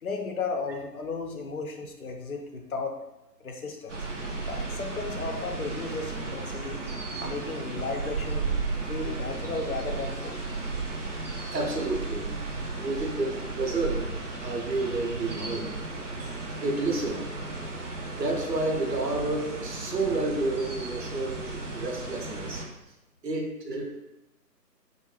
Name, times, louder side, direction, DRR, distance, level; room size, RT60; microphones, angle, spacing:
voice 1, 0.0-3.0 3.4-4.0 4.5-6.8 7.2-8.5 8.9-10.4, left 4 dB, 60° left, 3 dB, 0.5 m, -34 dB
sound 1, 3.9-22.6, right 3 dB, 50° right, 0.4 m, -34 dB
voice 2, 11.5-12.3 12.7-14.1 14.4-15.7 16.2-16.3 16.6-17.3 18.2-22.6 23.2-23.9, right 2 dB, 75° right, 1 dB, 0.8 m, -30 dB
2.5 x 2.1 x 3.1 m, 0.95 s
figure-of-eight pair, 150°, 49 cm